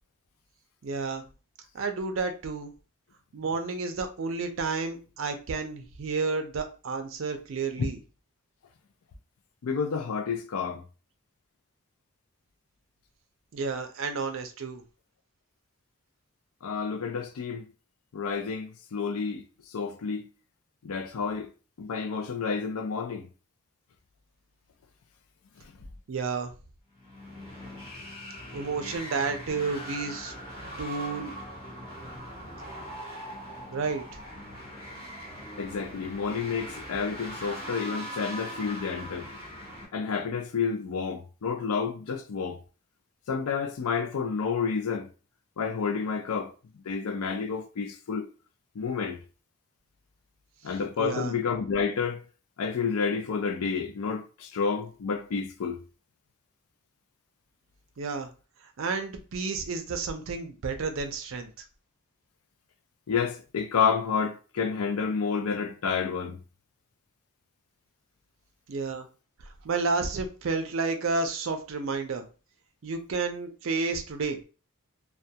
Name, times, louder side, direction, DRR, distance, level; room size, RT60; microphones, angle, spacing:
voice 1, 0.8-1.2 1.7-2.7 3.3-8.0 13.5-14.8 26.1-26.5 28.5-30.3 30.8-31.4 33.7-34.0 51.0-51.3 58.0-58.3 58.8-61.5 68.7-69.1 69.6-72.2 72.8-74.4, right 4 dB, 65° right, 0.4 m, -31 dB
voice 2, 9.6-10.8 16.6-17.7 18.1-19.4 19.7-20.3 20.8-21.5 21.8-23.3 35.6-39.3 39.9-42.6 43.3-45.1 45.6-46.5 46.9-48.3 48.8-49.2 50.6-52.2 52.6-55.8 63.1-66.4, left 5 dB, 90° left, 0.4 m, -30 dB
sound 1, 27.0-39.9, equal, 25° left, 0.9 m, -41 dB
2.2 x 2.2 x 2.7 m
head